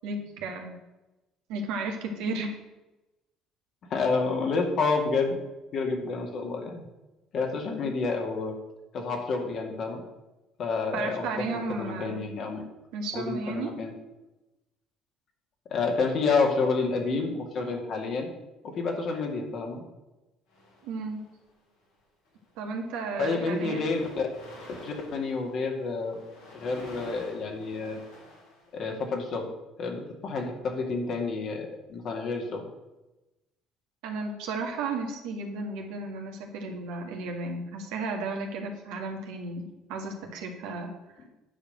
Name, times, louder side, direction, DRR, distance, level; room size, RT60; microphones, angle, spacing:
voice 1, 0.0-0.8 1.5-2.5 10.9-12.3 12.9-13.7 20.8-21.2 22.6-23.8 34.0-40.9, right 3 dB, 70° right, 2 dB, 1.9 m, -34 dB
voice 2, 3.9-5.4 5.7-6.8 7.3-8.6 8.9-10.0 10.6-12.6 13.1-13.9 15.7-18.3 18.6-19.8 23.2-24.3 24.8-26.2 26.5-28.0 28.7-29.5 29.8-32.7, left 4 dB, 55° left, 2 dB, 2.3 m, -29 dB
sound 1, 20.5-21.5 22.2-22.5 22.7-29.2, left 1 dB, 75° left, 3.7 m, -49 dB
9.8 x 5.0 x 7.9 m, 1.0 s
hypercardioid pair, 55°, 0 cm